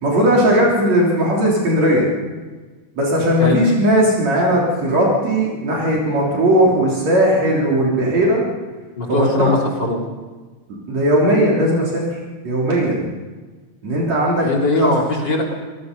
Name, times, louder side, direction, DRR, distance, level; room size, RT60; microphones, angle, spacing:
voice 1, 0.0-2.1 3.0-8.4 9.1-9.5 10.9-12.2 12.4-13.1 13.8-14.5 14.8-15.0, equal, 65° right, -4 dB, 4.8 m, -17 dB
voice 2, 9.0-10.0 14.4-15.5, left 2 dB, 35° left, -1 dB, 3.9 m, -20 dB
26.5 x 19.5 x 5.4 m, 1.3 s
omnidirectional pair, 3.3 m